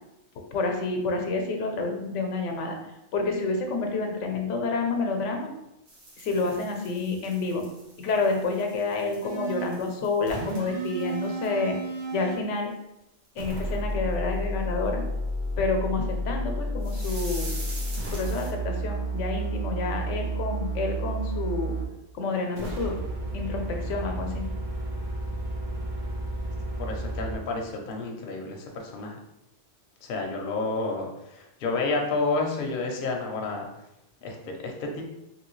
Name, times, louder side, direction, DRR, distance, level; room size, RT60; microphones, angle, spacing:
voice 1, 0.5-2.8 3.1-5.5 6.2-7.6 8.0-11.8 12.1-12.7 13.4-15.0 15.6-17.5 18.0-21.8 22.1-23.0 23.3-24.5, left 3 dB, 85° left, 3 dB, 0.9 m, -29 dB
sound 1, 5.9-11.8 12.1-12.3 12.6-12.7 13.2-13.3 13.9-14.0 16.8-18.5, right 2 dB, 85° right, 1.3 m, -45 dB
sound 2, 9.2-9.8 10.3-12.4 13.4-21.9 22.5-27.4, right 1 dB, 50° right, 0.7 m, -31 dB
voice 2, 26.8-29.2 30.0-33.7 34.2-34.4 34.6-35.0, left 3 dB, 55° left, 1 dB, 0.7 m, -30 dB
2.9 x 2.7 x 3.0 m, 0.88 s
omnidirectional pair, 1.2 m